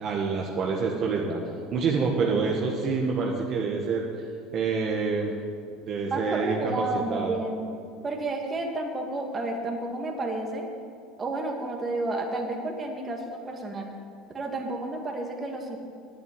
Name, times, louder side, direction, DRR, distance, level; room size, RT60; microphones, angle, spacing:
voice 1, 0.0-1.4 1.7-4.0 4.5-5.3 5.9-6.8 7.1-7.4, right 4 dB, 45° right, -1 dB, 1.7 m, -27 dB
voice 2, 6.1-7.6 8.0-10.6 11.2-13.9 14.3-15.8, right 2 dB, 25° right, 1 dB, 2.3 m, -31 dB
11.0 x 8.3 x 9.4 m, 2.3 s
supercardioid pair, 120°, 0 cm